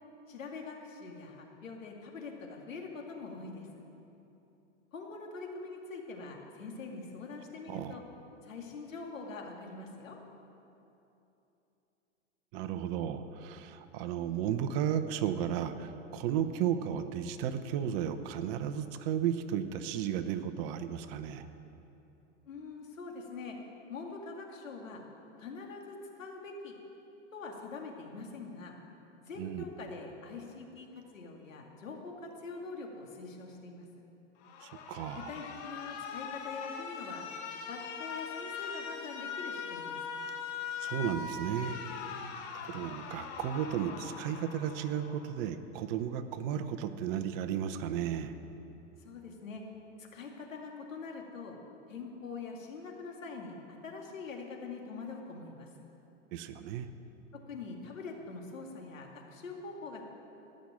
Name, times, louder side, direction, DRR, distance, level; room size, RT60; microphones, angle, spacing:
voice 1, 0.3-3.7 4.9-8.0 8.4-10.2 22.4-23.6 23.9-25.0 25.4-26.8 27.3-28.8 29.2-33.9 35.1-37.3 37.7-40.0 42.2-42.5 49.0-49.6 50.0-51.6 51.9-55.7 57.3-60.0, left 4 dB, 85° left, 1 dB, 2.3 m, -44 dB
voice 2, 12.5-21.5 29.4-29.6 34.6-35.3 40.8-42.3 42.5-48.3 56.3-56.9, right 9 dB, 45° right, 10 dB, 0.9 m, -34 dB
Alarm, 34.4-45.4, left 6 dB, 55° left, 1.6 m, -41 dB
17.5 x 6.5 x 8.6 m, 2.9 s
hypercardioid pair, 110°, 38 cm